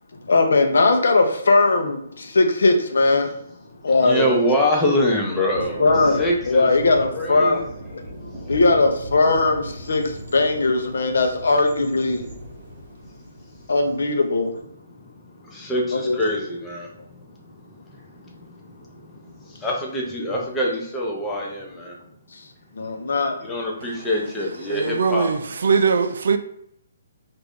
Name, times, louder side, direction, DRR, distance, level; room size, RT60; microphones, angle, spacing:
voice 1, 0.3-3.3 3.8-4.3 5.8-7.6 8.5-12.3 13.7-14.5 15.9-16.2 22.8-23.4, left 3 dB, 75° left, 0.6 m, -19 dB
voice 2, 4.0-5.8 6.2-6.7 7.1-7.6 15.4-16.9 19.5-21.9 23.4-25.3, equal, 5° left, 0.5 m, -24 dB
Thunder, 5.5-14.5, right 1 dB, 30° right, 0.8 m, -38 dB
voice 3, 24.7-26.4, right 5 dB, 60° right, 0.3 m, -21 dB
3.2 x 2.5 x 3.5 m
hypercardioid pair, 175°, 0 cm